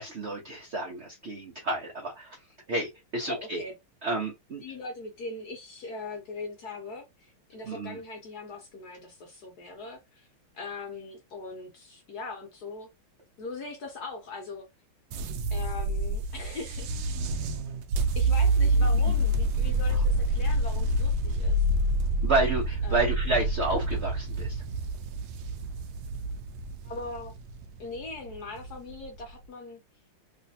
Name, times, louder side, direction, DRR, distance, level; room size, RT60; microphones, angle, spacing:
voice 1, 0.0-2.4 2.7-3.6 4.0-4.6 7.7-8.0 22.2-24.6, right 2 dB, 55° right, 0.7 m, -30 dB
voice 2, 3.2-3.7 4.6-10.3 10.5-12.9 13.4-14.7 15.5-16.9 18.1-21.7 22.8-23.1 26.8-27.4 27.8-29.8, left 3 dB, 60° left, 1.1 m, -40 dB
sound 1, 15.1-29.3, right 1 dB, 85° right, 0.8 m, -27 dB
3.3 x 3.0 x 2.7 m
omnidirectional pair, 2.3 m